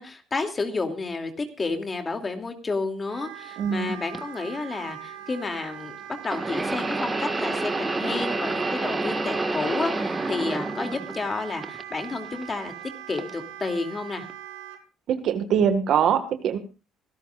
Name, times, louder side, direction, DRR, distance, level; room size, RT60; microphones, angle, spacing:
voice 1, 0.0-6.0 6.2-12.7 13.1-14.3, left 3 dB, 30° left, 5 dB, 2.7 m, -31 dB
Wind instrument woodwind instrument, 3.1-14.8, right 12 dB, 85° right, 1.8 m, -41 dB
voice 2, 3.6-3.9 15.1-16.6, right 8 dB, 60° right, 9 dB, 1.7 m, -23 dB
sound 1, 4.1-4.2 6.2-11.3 11.6-12.4 13.2-13.3 14.3-14.4, right 2 dB, 20° right, 1.7 m, -28 dB
24.5 x 12.5 x 2.5 m, 0.32 s
supercardioid pair, 80°, 0 cm